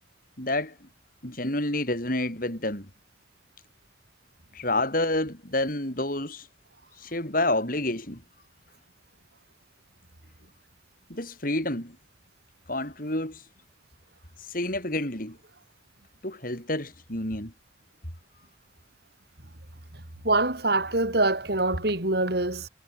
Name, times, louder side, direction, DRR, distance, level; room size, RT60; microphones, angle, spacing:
voice 1, 0.4-0.9 1.2-2.9 4.5-6.5 7.0-8.2 11.1-12.0 12.7-13.4 14.5-15.4 16.2-17.5, left 1 dB, 50° left, 7.3 m, -29 dB
voice 2, 20.2-22.7, right 2 dB, 60° right, 3.6 m, -24 dB
head